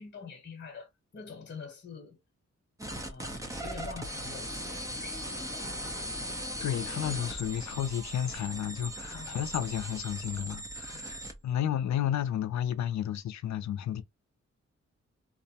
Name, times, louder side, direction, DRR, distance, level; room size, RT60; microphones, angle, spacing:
voice 1, 0.0-2.2 2.9-5.2 9.1-9.4 10.9-11.1, left 5 dB, 40° left, 1.0 m, -46 dB
sound 1, 2.8-11.4, right 1 dB, 10° right, 0.6 m, -38 dB
voice 2, 6.6-14.0, left 10 dB, 70° left, 0.5 m, -32 dB
2.3 x 2.1 x 2.7 m
cardioid pair, 100°, 29 cm